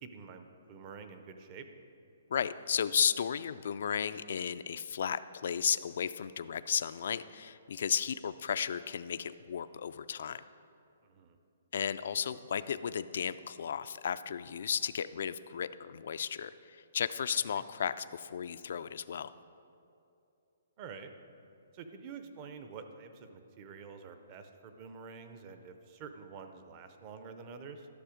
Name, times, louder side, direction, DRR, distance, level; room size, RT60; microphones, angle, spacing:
voice 1, 0.0-1.7 11.0-11.4 17.5-17.6 20.8-21.1 21.7-27.9, right 5 dB, 25° right, 7 dB, 0.5 m, -48 dB
voice 2, 2.3-10.4 11.7-19.3, left 7 dB, 55° left, 14 dB, 0.3 m, -34 dB
11.5 x 6.7 x 5.0 m, 2.7 s
hypercardioid pair, 170°, 0 cm